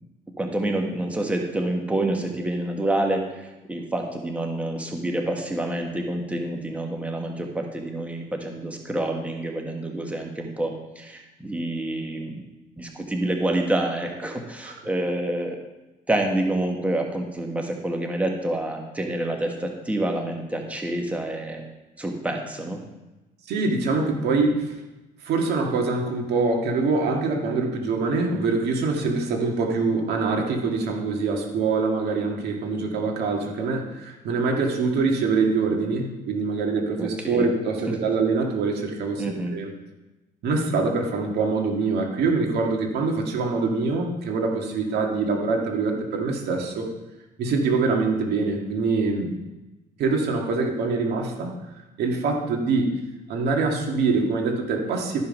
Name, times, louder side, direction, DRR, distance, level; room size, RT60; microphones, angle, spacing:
voice 1, 0.4-12.4 12.8-15.6 16.1-21.6 22.0-22.8 37.0-37.5 37.9-38.0 39.2-39.6, right 1 dB, 10° right, 2 dB, 1.4 m, -27 dB
voice 2, 23.5-24.8 25.2-39.7 40.4-46.9 47.4-49.4 50.0-51.6 52.0-53.0 53.3-55.2, right 4 dB, 75° right, 1 dB, 1.9 m, -24 dB
12.5 x 5.6 x 5.3 m, 1.0 s
cardioid pair, 110°, 17 cm